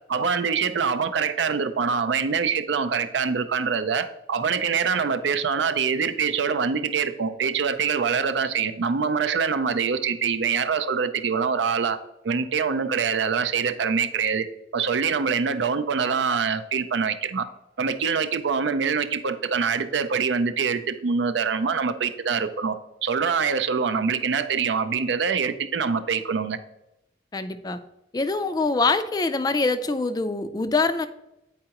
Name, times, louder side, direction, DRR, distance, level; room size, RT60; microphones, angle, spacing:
voice 1, 0.1-14.5 14.7-17.5 17.8-22.8 23.0-26.6, right 6 dB, 80° right, 11 dB, 0.5 m, -24 dB
voice 2, 27.3-27.8 28.1-31.1, left 3 dB, 20° left, 10 dB, 0.3 m, -24 dB
8.7 x 4.6 x 2.9 m, 0.88 s
head